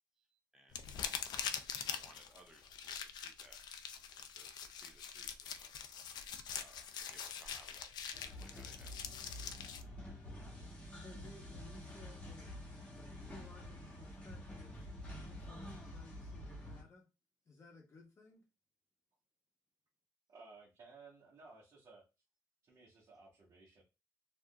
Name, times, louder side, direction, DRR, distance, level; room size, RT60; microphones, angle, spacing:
voice 1, 0.2-1.4 1.9-3.6 4.2-5.7 6.5-9.0, right 2 dB, 5° right, 1 dB, 0.5 m, -64 dB
sound 1, 0.7-9.8, left 7 dB, 80° left, 0.4 m, -44 dB
sound 2, 8.1-16.8, left 1 dB, 15° left, 1.0 m, -49 dB
voice 2, 10.9-12.5 12.9-14.9 15.3-17.0 17.5-18.4, left 3 dB, 40° left, 1 dB, 0.8 m, -58 dB
voice 3, 20.3-22.0 22.6-23.8, right 3 dB, 55° right, -7 dB, 1.2 m, -58 dB
3.4 x 2.5 x 2.2 m, 0.28 s
cardioid pair, 125°, 7 cm